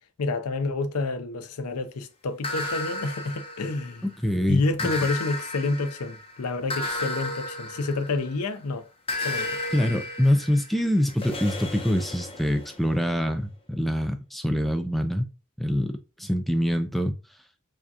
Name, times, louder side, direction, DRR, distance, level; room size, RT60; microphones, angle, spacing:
voice 1, 0.2-4.0 4.5-8.8 9.2-9.6, left 3 dB, 90° left, 0.5 m, -29 dB
sound 1, 2.4-4.1 4.8-8.5 9.1-12.8, left 2 dB, 25° left, 0.7 m, -33 dB
voice 2, 4.0-4.9 9.7-15.3 15.6-17.1, equal, ahead, 0.3 m, -25 dB
4.8 x 2.3 x 2.7 m
head